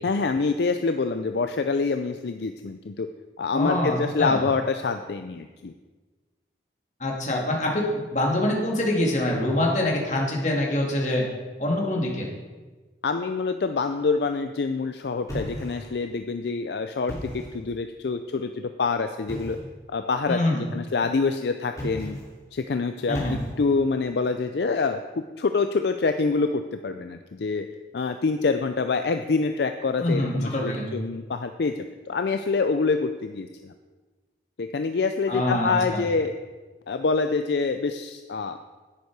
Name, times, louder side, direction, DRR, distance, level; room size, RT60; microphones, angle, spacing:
voice 1, 0.0-3.1 3.4-5.7 13.0-19.6 19.9-20.4 20.7-22.2 22.5-27.7 27.9-33.7 34.6-36.3 36.9-38.6, left 4 dB, 65° left, 8 dB, 0.4 m, -26 dB
voice 2, 3.5-4.4 7.0-11.2 11.6-12.3 20.3-20.6 23.1-23.3 30.0-30.9 35.3-36.0, left 1 dB, 40° left, -2 dB, 2.3 m, -25 dB
sound 1, 15.3-16.1 16.9-17.6 19.3-19.7 21.7-22.4 23.1-23.8, equal, 20° left, 3.0 m, -35 dB
11.0 x 9.5 x 4.7 m, 1.3 s
head